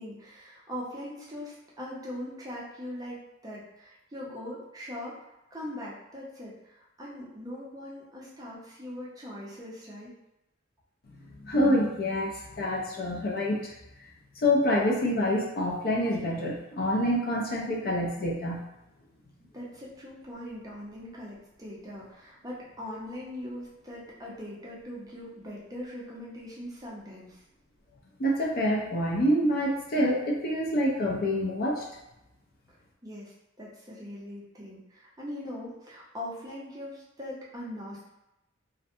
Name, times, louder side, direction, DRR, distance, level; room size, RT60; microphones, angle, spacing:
voice 1, 0.0-5.2 5.5-10.1 19.5-27.4 33.0-38.1, left 1 dB, 20° right, -6 dB, 0.6 m, -41 dB
voice 2, 11.4-13.7 14.4-18.7 28.2-31.8, equal, 50° left, -2 dB, 0.5 m, -26 dB
2.5 x 2.1 x 2.6 m, 0.91 s
head